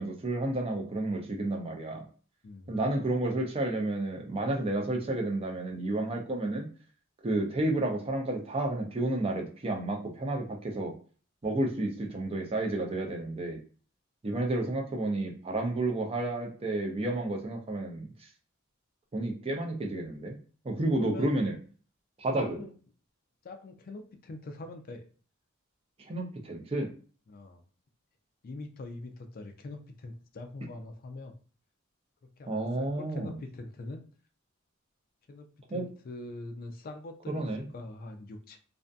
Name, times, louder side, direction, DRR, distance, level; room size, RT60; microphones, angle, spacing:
voice 1, 0.0-2.0 2.7-6.7 7.2-10.9 11.4-13.6 14.2-18.1 19.1-20.4 20.6-21.6 22.2-22.6 26.0-26.9 32.5-33.4 35.7-35.8 37.3-37.7, right 2 dB, 25° right, 1 dB, 0.5 m, -31 dB
voice 2, 21.0-21.5 22.4-22.7 23.4-25.1 27.3-27.6 28.4-31.3 32.4-34.0 35.3-35.5 35.7-37.5 37.7-38.6, left 2 dB, 45° left, 5 dB, 0.4 m, -43 dB
2.6 x 2.4 x 2.2 m, 0.41 s
head